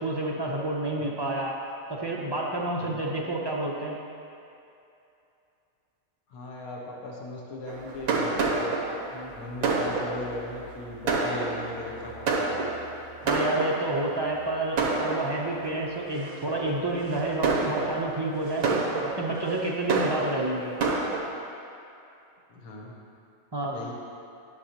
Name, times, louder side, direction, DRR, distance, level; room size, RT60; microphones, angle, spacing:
voice 1, 0.0-1.6 1.9-4.0 9.1-9.3 13.2-20.8 23.5-23.9, right 2 dB, 45° right, -3 dB, 0.3 m, -29 dB
voice 2, 6.3-8.7 9.3-12.7 22.5-22.9 23.7-23.9, left 2 dB, 80° left, -3 dB, 1.4 m, -38 dB
Fireworks, 7.7-14.1 14.8-15.7 16.2-16.5 17.1-21.2, right 3 dB, 75° right, 1.3 m, -28 dB
10.5 x 6.9 x 2.9 m, 2.7 s
omnidirectional pair, 1.5 m